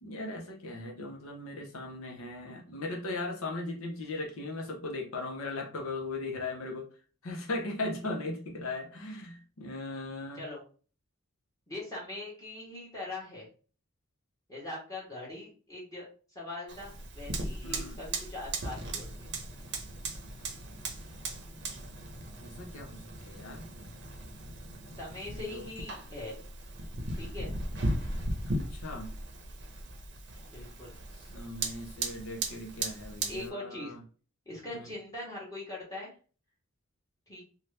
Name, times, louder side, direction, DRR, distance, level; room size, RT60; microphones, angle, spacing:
voice 1, 0.0-6.9 7.2-10.4 17.6-18.0 22.4-23.7 25.4-25.7 28.7-29.1 31.2-34.0, left 2 dB, 75° left, 0 dB, 0.8 m, -38 dB
voice 2, 11.7-13.5 14.5-16.1 16.3-19.3 24.9-26.4 27.1-27.5 30.5-30.9 33.2-33.9 34.5-36.1 37.3-37.4, left 2 dB, 15° left, -5 dB, 1.2 m, -41 dB
Fire, 16.7-33.5, right 2 dB, 55° right, 0.7 m, -38 dB
2.8 x 2.3 x 3.2 m, 0.38 s
head